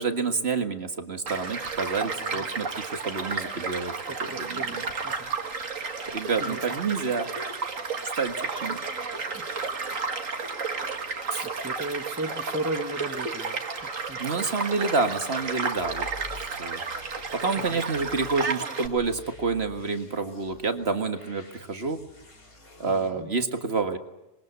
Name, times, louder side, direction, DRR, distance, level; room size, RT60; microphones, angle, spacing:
voice 1, 0.0-3.9 4.4-4.8 6.1-7.3 8.2-8.3 8.6-8.8 11.3-11.5 14.2-16.1 16.6-16.8 17.3-22.0 22.8-24.0, right 4 dB, 45° right, 7 dB, 1.9 m, -28 dB
Child speech kid speaking / Stream / Car passing by, 1.3-18.9, right 4 dB, 65° right, 2.2 m, -32 dB
voice 2, 2.0-2.5 4.0-5.3 6.4-6.6 9.3-9.4 9.9-10.5 11.4-14.5 17.5-17.8 22.8-23.3, right 2 dB, 10° right, 7 dB, 1.1 m, -37 dB
sound 1, 15.7-23.1, left 1 dB, 85° left, 4.2 m, -48 dB
27.0 x 21.5 x 8.2 m, 0.96 s
omnidirectional pair, 1.5 m